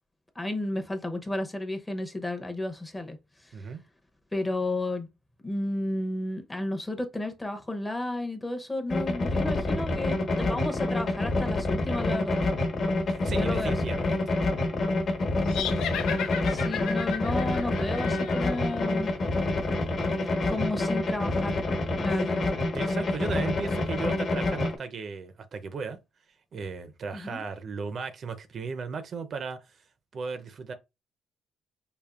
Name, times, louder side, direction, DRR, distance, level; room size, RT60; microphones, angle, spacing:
voice 1, 0.4-3.2 3.5-3.6 4.3-5.1 5.4-12.4 13.3-14.0 15.4-15.9 16.5-19.1 20.5-21.6 22.0-22.4 27.1-27.4, left 1 dB, 10° left, 0.7 m, -32 dB
sound 1, 8.9-24.8, left 2 dB, 45° left, 1.2 m, -27 dB
voice 2, 13.1-14.4 22.1-22.2 22.7-26.0 26.5-29.6 30.1-30.7, right 5 dB, 50° right, 0.5 m, -36 dB
sound 2, 15.5-18.9, left 8 dB, 85° left, 0.6 m, -35 dB
5.0 x 2.5 x 2.4 m
cardioid pair, 105°, 0 cm